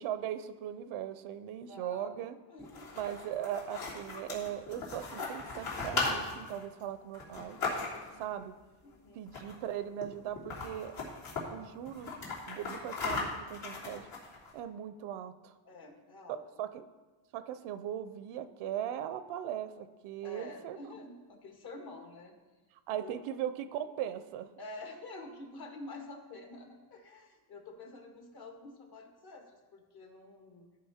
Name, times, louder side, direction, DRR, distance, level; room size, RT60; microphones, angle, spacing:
voice 1, 0.0-2.4 3.0-7.6 8.2-8.5 9.1-10.9 11.5-12.2 12.5-14.1 14.5-15.5 16.3-16.8 17.3-20.8 22.9-24.5, right 10 dB, 75° right, 12 dB, 0.8 m, -39 dB
voice 2, 1.7-2.1 2.5-2.9 3.2-3.3 8.1-8.4 8.8-9.3 15.6-16.7 20.2-22.4 23.0-23.2 24.6-30.8, left 2 dB, 50° left, 2 dB, 1.9 m, -48 dB
sound 1, 2.6-8.2 9.3-9.7 10.0-10.1 10.4-11.4 11.9-14.5, left 3 dB, 75° left, 3.2 m, -37 dB
13.5 x 5.3 x 4.3 m, 1.2 s
cardioid pair, 115°, 49 cm